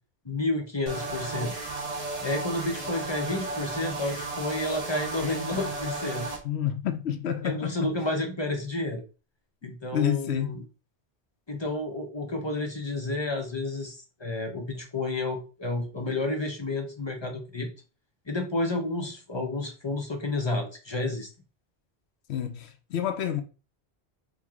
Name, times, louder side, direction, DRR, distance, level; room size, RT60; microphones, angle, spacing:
voice 1, 0.2-1.5 2.2-6.2 7.4-9.0 9.6-10.6 11.5-17.7 18.3-21.3, left 2 dB, 30° left, 0.6 m, -31 dB
sound 1, 0.9-6.4, right 3 dB, 35° right, 0.9 m, -34 dB
voice 2, 6.4-7.7 9.6-10.6 22.3-23.4, left 9 dB, 75° left, 0.9 m, -29 dB
4.6 x 2.3 x 3.5 m
omnidirectional pair, 1.1 m